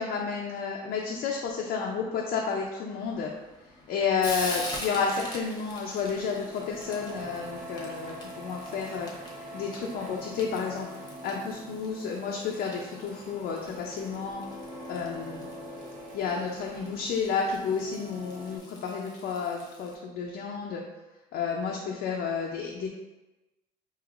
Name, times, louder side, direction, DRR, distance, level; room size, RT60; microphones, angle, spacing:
voice 1, 0.0-3.3 3.9-9.1 9.4-10.9 11.2-14.4 14.9-15.5 16.1-20.8 21.3-22.9, left 5 dB, 70° left, -1 dB, 0.5 m, -31 dB
Frying (food), 3.0-20.0, left 1 dB, 25° left, 0.8 m, -44 dB
Printer, 4.4-18.6, equal, 50° right, 0.7 m, -44 dB
4.8 x 2.8 x 2.4 m, 1.1 s
cardioid pair, 110°, 17 cm